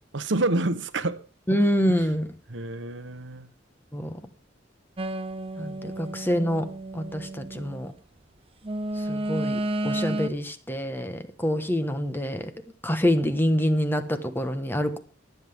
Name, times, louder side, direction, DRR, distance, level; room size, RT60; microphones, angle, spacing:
voice 1, 0.1-1.2 1.9-2.0 2.5-3.5, right 2 dB, 75° right, 1.0 m, -28 dB
voice 2, 1.5-2.3 3.9-4.2 5.6-6.6 6.9-7.9 9.0-12.5 12.8-15.0, equal, 10° left, 1.3 m, -26 dB
sound 1, 5.0-7.9 8.6-10.3, right 1 dB, 30° right, 0.7 m, -31 dB
23.5 x 8.0 x 3.6 m
head